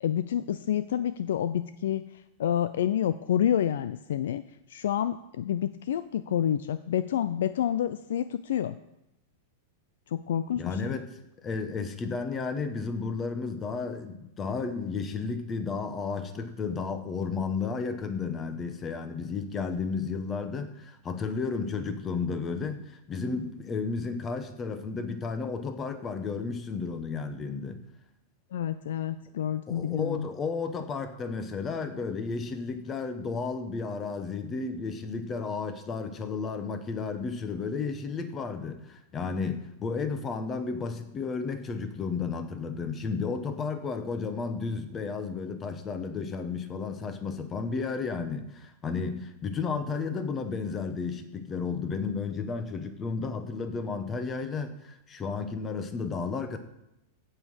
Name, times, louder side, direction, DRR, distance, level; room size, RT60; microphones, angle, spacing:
voice 1, 0.0-4.4 4.7-8.8 10.1-10.9 28.5-30.3, left 10 dB, 80° left, 13 dB, 0.5 m, -28 dB
voice 2, 10.5-11.1 11.4-27.8 29.7-56.6, left 4 dB, 15° left, 8 dB, 1.0 m, -33 dB
16.0 x 5.6 x 6.4 m, 0.88 s
supercardioid pair, 170°, 0 cm